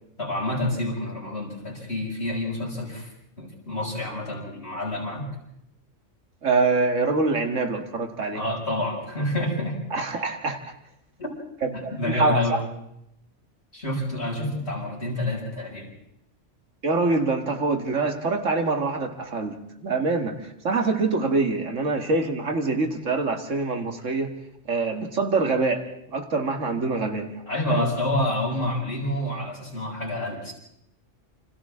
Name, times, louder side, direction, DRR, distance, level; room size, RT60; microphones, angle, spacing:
voice 1, 0.2-3.1 3.4-5.3 8.3-9.8 11.2-11.4 11.7-12.6 13.7-15.9 27.5-30.5, left 1 dB, 60° left, -3 dB, 6.8 m, -28 dB
voice 2, 6.4-8.4 9.9-10.6 11.6-12.6 16.8-19.6 19.8-24.3 24.7-25.8 26.1-27.3 27.7-27.9, right 3 dB, 85° right, 4 dB, 2.3 m, -25 dB
28.5 x 27.0 x 3.7 m, 0.79 s
omnidirectional pair, 1.3 m